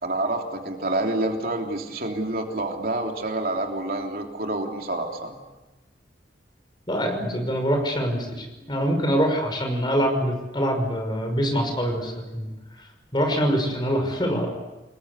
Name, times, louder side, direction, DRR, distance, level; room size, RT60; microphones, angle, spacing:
voice 1, 0.0-5.4, right 2 dB, 55° right, 2 dB, 3.2 m, -28 dB
voice 2, 6.9-12.5 13.1-14.5, equal, 25° left, 4 dB, 5.8 m, -24 dB
29.0 x 21.0 x 8.3 m, 1.1 s
head